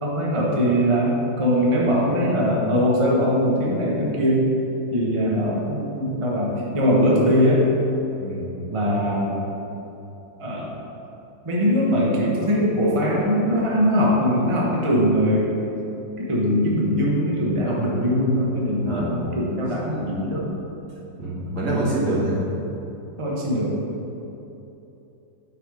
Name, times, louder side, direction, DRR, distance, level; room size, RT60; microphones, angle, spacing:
voice 1, 0.0-4.5 4.9-7.7 8.7-9.4 10.4-10.7 11.4-15.5 16.2-20.5 23.2-23.8, equal, 25° right, -4 dB, 0.7 m, -21 dB
voice 2, 8.2-8.5 18.8-19.1 21.2-22.4, right 1 dB, 55° right, -7 dB, 2.2 m, -25 dB
8.8 x 4.1 x 4.9 m, 2.9 s
omnidirectional pair, 2.1 m